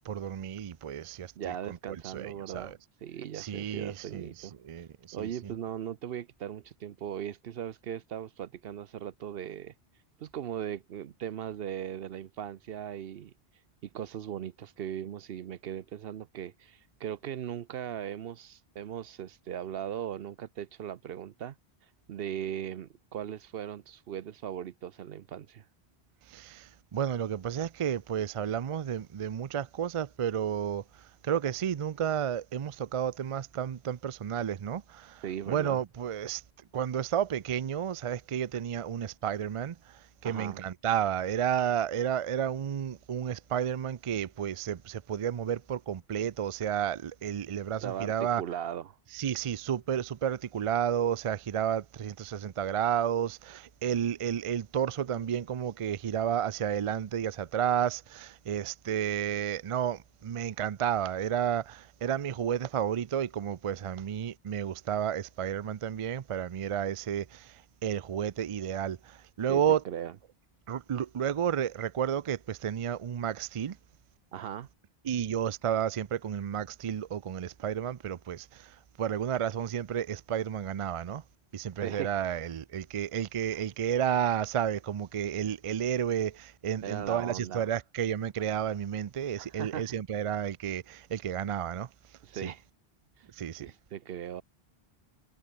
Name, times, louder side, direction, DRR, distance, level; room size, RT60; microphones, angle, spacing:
voice 1, 0.0-2.8 3.3-4.9 5.2-5.3 26.3-30.8 31.2-36.4 36.7-48.4 49.1-69.8 70.7-73.8 75.0-81.2 81.5-91.9 92.4-92.5 93.4-93.7, right 9 dB, 45° right, 0.4 m, -31 dB
voice 2, 1.4-4.5 5.1-9.7 10.2-13.3 13.8-21.6 22.1-25.6 35.2-35.8 40.2-40.6 47.8-49.0 69.5-70.1 74.3-74.7 81.8-82.1 86.8-87.7 89.4-89.9 92.2-92.6 93.2-93.3 93.5-94.4, right 10 dB, 70° right, 0.9 m, -38 dB
omnidirectional pair, 1.1 m